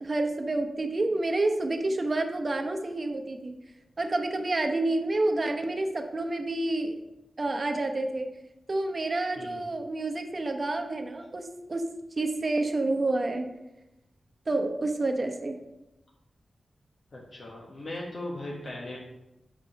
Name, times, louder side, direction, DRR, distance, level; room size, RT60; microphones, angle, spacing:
voice 1, 0.0-3.5 4.0-6.9 7.4-8.3 8.7-11.9 12.2-13.5 14.5-15.6, right 2 dB, 45° right, 4 dB, 0.9 m, -29 dB
voice 2, 9.4-9.7 17.1-19.0, left 1 dB, 65° left, -3 dB, 1.3 m, -38 dB
5.2 x 5.1 x 5.5 m, 0.94 s
cardioid pair, 60°, 0 cm